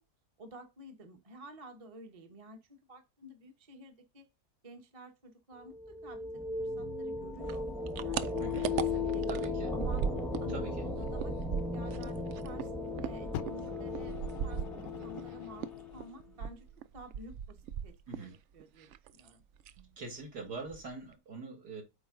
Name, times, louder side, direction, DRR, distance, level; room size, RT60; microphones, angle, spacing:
voice 1, 0.4-4.2 4.6-7.7 8.0-10.0 10.4-11.3 11.7-12.7 13.0-16.6 16.9-19.4, right 1 dB, 25° right, 1.1 m, -51 dB
sound 1, 5.6-16.2, left 3 dB, ahead, 0.9 m, -36 dB
sound 2, 7.4-10.5 10.8-15.3 15.6-18.4 18.6-19.3 19.6-19.9 20.2-20.3 20.6-21.1, right 9 dB, 85° right, 0.6 m, -38 dB
voice 2, 8.4-8.7 9.3-9.7 10.5-10.8 18.1-18.4 20.0-21.8, right 3 dB, 70° right, 3.0 m, -43 dB
Fire, 13.3-16.2 17.0-17.1, left 12 dB, 70° left, 0.9 m, -46 dB
8.5 x 4.6 x 3.8 m
omnidirectional pair, 1.8 m